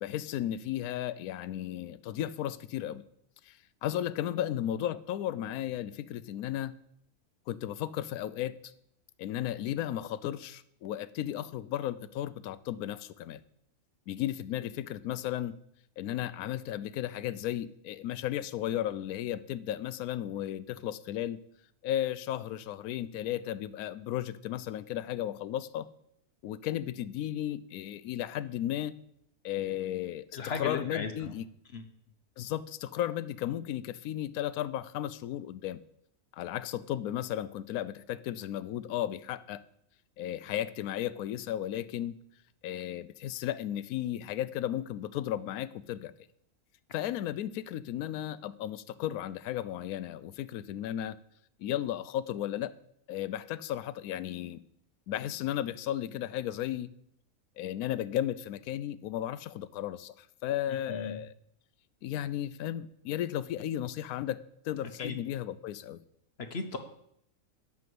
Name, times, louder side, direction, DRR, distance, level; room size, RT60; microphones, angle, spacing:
voice 1, 0.0-3.0 3.5-6.7 7.5-8.6 9.2-13.4 14.1-15.5 16.0-21.4 21.8-25.9 26.4-28.9 29.4-30.3 30.6-31.4 32.4-35.8 36.3-39.6 40.2-42.1 42.6-46.1 46.9-51.2 51.6-52.7 53.1-54.6 55.1-56.9 57.6-61.3 62.0-64.4 64.6-66.0, left 12 dB, 75° left, 16 dB, 1.0 m, -34 dB
voice 2, 30.3-31.3 31.7-31.9 60.7-61.2 65.0-65.2 66.4-66.8, left 5 dB, 50° left, 7 dB, 1.0 m, -36 dB
9.5 x 6.2 x 7.7 m, 0.73 s
omnidirectional pair, 1.6 m